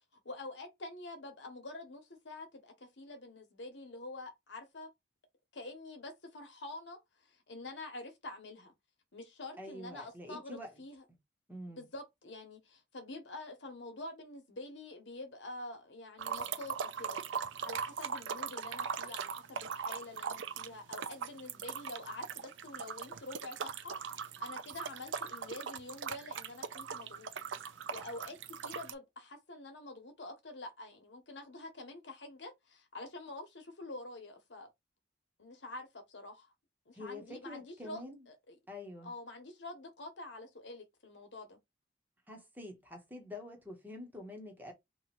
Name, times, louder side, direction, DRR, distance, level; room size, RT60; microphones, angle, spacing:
voice 1, 0.1-4.9 5.5-8.7 9.1-11.0 11.7-17.2 17.6-27.3 27.9-34.7 35.4-36.5 36.9-38.6 39.0-41.6, left 2 dB, 75° left, 1.1 m, -47 dB
voice 2, 9.6-10.7 11.5-11.9 36.9-38.3 38.7-39.1 42.3-44.7, left 1 dB, 10° right, 1.0 m, -46 dB
sound 1, 16.2-28.9, right 6 dB, 90° right, 0.5 m, -40 dB
2.9 x 2.4 x 4.2 m
head